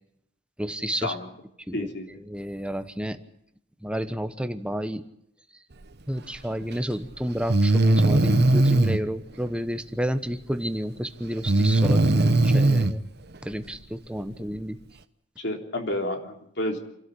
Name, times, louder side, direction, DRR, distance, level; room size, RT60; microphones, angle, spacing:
voice 1, 0.6-1.1 1.7-1.9 2.3-3.2 3.8-5.1 6.1-13.1 13.4-14.8, equal, 5° right, 9 dB, 1.1 m, -31 dB
voice 2, 1.7-2.1 13.6-13.7 14.4-14.5 15.4-16.8, left 1 dB, 60° left, 3 dB, 3.5 m, -30 dB
Breathing, 6.6-6.7 7.5-9.0 11.5-12.9, right 2 dB, 55° right, 1.0 m, -19 dB
28.0 x 12.5 x 10.0 m, 0.76 s
head